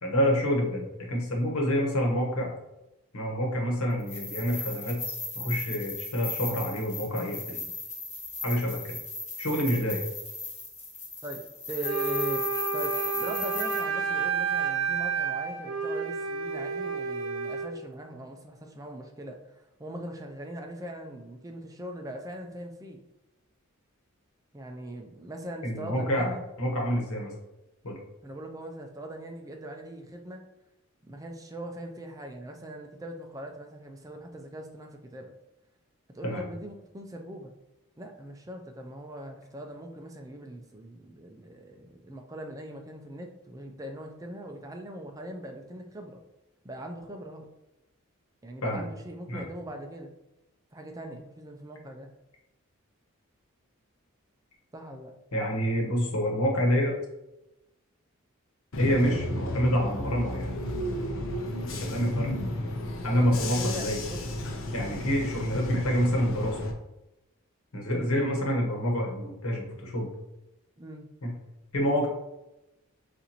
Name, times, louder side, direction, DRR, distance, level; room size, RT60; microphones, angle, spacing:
voice 1, 0.0-2.5 3.1-5.0 5.3-7.7 8.4-9.0 9.4-10.0 25.6-26.3 26.6-27.3 27.8-28.0 36.2-36.4 48.6-48.8 49.3-49.4 55.3-56.9 58.8-60.5 61.8-62.3 63.0-64.0 64.7-66.6 67.7-70.1 71.2-71.3 71.7-72.1, equal, 90° left, 1 dB, 1.2 m, -27 dB
sound 1, 4.0-13.8, left 3 dB, 30° left, 1.5 m, -37 dB
voice 2, 11.2-12.5 12.7-23.0 24.5-26.4 28.2-30.4 31.0-35.3 36.1-37.5 38.0-46.2 46.6-47.5 48.4-50.1 50.7-52.1 54.7-55.1 63.5-64.3 64.9-65.1 67.9-68.1 70.8-71.1, right 1 dB, 15° right, 3 dB, 0.4 m, -41 dB
Wind instrument woodwind instrument, 11.8-17.7, right 5 dB, 70° right, 0.7 m, -30 dB
Bus / Engine, 58.7-66.7, left 1 dB, 65° left, 0.6 m, -33 dB
6.8 x 2.6 x 2.9 m, 0.94 s
head